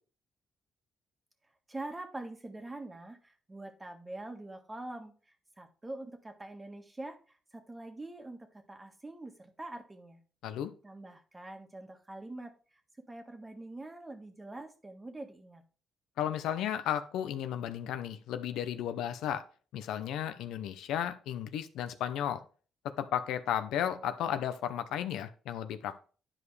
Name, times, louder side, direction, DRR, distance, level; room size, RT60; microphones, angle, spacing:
voice 1, 1.7-10.2 10.8-12.8 13.1-15.6, right 2 dB, 20° right, 5 dB, 1.4 m, -44 dB
voice 2, 16.2-19.4 19.7-22.4 23.0-26.1, left 10 dB, 85° left, 10 dB, 0.7 m, -34 dB
10.5 x 5.0 x 3.2 m, 0.38 s
cardioid pair, 90°, 0 cm